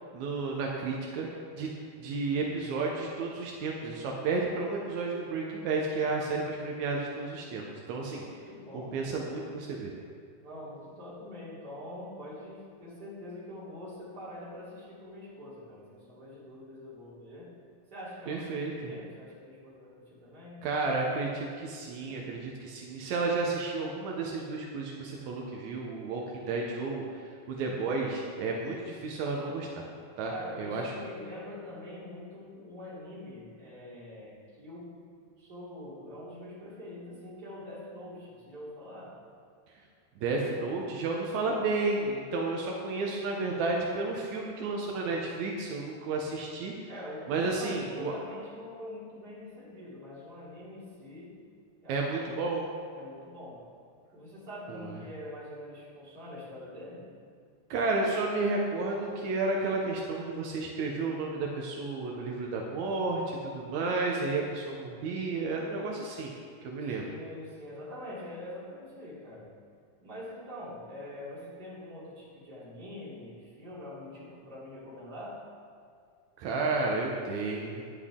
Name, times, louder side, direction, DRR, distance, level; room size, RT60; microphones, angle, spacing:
voice 1, 0.1-1.3 1.6-1.7 2.0-8.3 8.7-9.9 18.3-18.9 20.6-29.9 30.2-30.9 40.2-46.9 47.3-48.1 51.9-52.7 54.7-54.9 57.7-66.3 66.6-67.0 76.4-77.8, right 3 dB, 80° right, -1 dB, 1.6 m, -32 dB
voice 2, 8.0-9.1 10.4-17.5 17.9-20.7 30.3-35.0 35.4-39.2 46.9-51.4 51.8-52.5 52.9-53.7 54.1-57.1 66.8-69.5 70.0-75.4, left 1 dB, 25° right, -9 dB, 3.2 m, -44 dB
10.5 x 10.0 x 3.7 m, 2.2 s
omnidirectional pair, 4.5 m